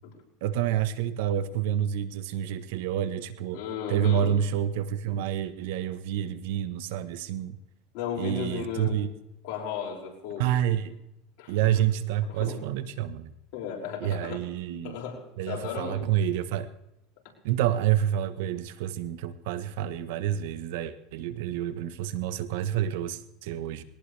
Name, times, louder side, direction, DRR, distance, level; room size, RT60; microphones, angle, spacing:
voice 1, 0.4-3.6 3.9-7.6 8.2-9.1 10.4-11.0 11.5-13.3 14.0-15.0 15.4-16.7 17.4-23.8, right 10 dB, 75° right, 13 dB, 1.2 m, -28 dB
voice 2, 3.5-4.4 7.9-9.0 9.4-10.5 11.4-11.8 12.2-12.6 13.5-14.5 14.8-16.1, left 7 dB, 70° left, -2 dB, 6.2 m, -35 dB
21.0 x 18.5 x 3.4 m, 0.84 s
supercardioid pair, 120°, 0 cm